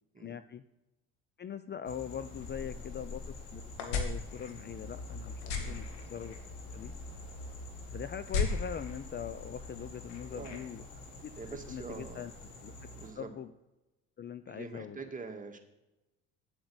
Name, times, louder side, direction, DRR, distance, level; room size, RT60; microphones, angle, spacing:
voice 1, 0.2-0.6 1.4-5.8 6.1-6.4 6.7-6.9 7.9-10.8 11.2-11.3 11.7-12.3 12.6-12.7 13.2-13.5 14.2-15.0, left 8 dB, 30° left, 13 dB, 0.5 m, -41 dB
sound 1, 1.9-13.1, left 2 dB, 75° left, 3.2 m, -47 dB
sound 2, 2.3-12.5, left 4 dB, 90° left, 1.9 m, -40 dB
voice 2, 10.3-10.7 11.4-12.3 12.9-13.3 14.5-15.6, right 4 dB, 25° right, 3 dB, 2.0 m, -45 dB
8.0 x 7.8 x 7.9 m, 1.0 s
hypercardioid pair, 70°, 35 cm